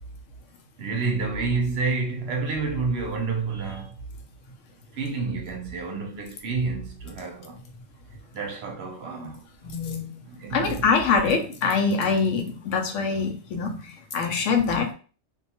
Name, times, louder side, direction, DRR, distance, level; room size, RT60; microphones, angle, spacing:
voice 1, 0.8-3.9 4.9-7.6 8.3-9.4 10.3-10.9, right 4 dB, 65° right, 0.8 m, -29 dB
voice 2, 9.6-10.1 10.5-13.8 14.1-14.9, left 5 dB, 80° left, 1.0 m, -24 dB
2.6 x 2.3 x 2.8 m
omnidirectional pair, 1.3 m